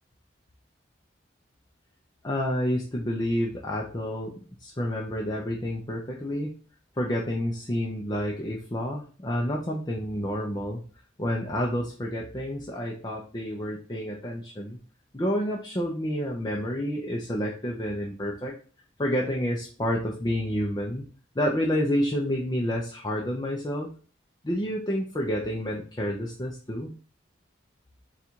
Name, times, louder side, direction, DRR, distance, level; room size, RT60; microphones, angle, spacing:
voice 1, 2.2-6.5 7.0-10.8 11.2-14.8 15.1-18.5 19.0-21.0 21.4-23.9 24.4-26.9, equal, 20° left, -1 dB, 0.5 m, -29 dB
3.9 x 2.4 x 4.4 m, 0.39 s
head